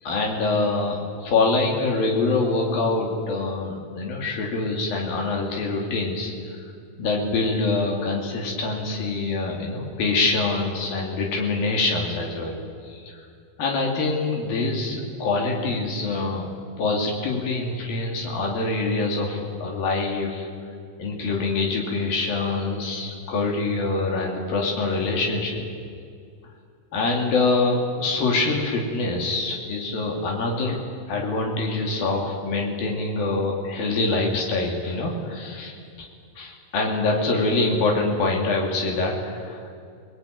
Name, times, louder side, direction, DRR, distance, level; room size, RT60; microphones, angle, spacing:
voice 1, 0.0-6.3 7.0-12.5 12.9-13.0 13.6-16.5 16.8-20.5 21.0-25.6 26.9-30.8 31.1-36.1 36.4-39.7, left 3 dB, 85° left, 0 dB, 4.6 m, -25 dB
27.5 x 19.5 x 9.4 m, 2.2 s
omnidirectional pair, 4.0 m